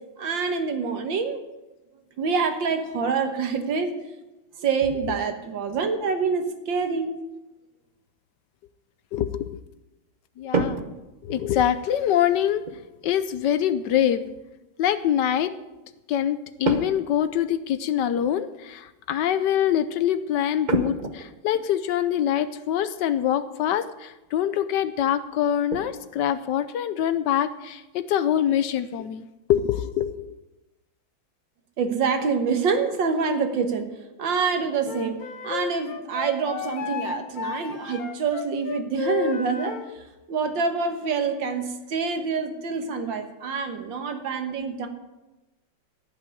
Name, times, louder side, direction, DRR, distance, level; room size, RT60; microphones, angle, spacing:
voice 1, 0.2-1.4 2.2-4.0 4.6-7.1 31.8-33.9 34.2-40.0 40.3-44.9, right 5 dB, 75° right, 7 dB, 2.0 m, -26 dB
voice 2, 9.1-9.6 10.4-10.8 11.2-12.6 13.0-14.2 14.8-15.5 16.1-30.3, left 10 dB, 70° left, 13 dB, 1.2 m, -24 dB
sound 1, 10.5-11.7 12.6-12.9 16.6-17.2 17.4-17.5 18.1-18.3 20.7-21.6 23.0-23.1 23.6-23.7 24.1-24.3 24.7-24.8 25.2-26.0, right 3 dB, 45° right, 0.6 m, -29 dB
Wind instrument woodwind instrument, 34.8-39.9, left 8 dB, 55° left, 1.2 m, -33 dB
14.5 x 5.9 x 9.1 m, 1.0 s
omnidirectional pair, 2.1 m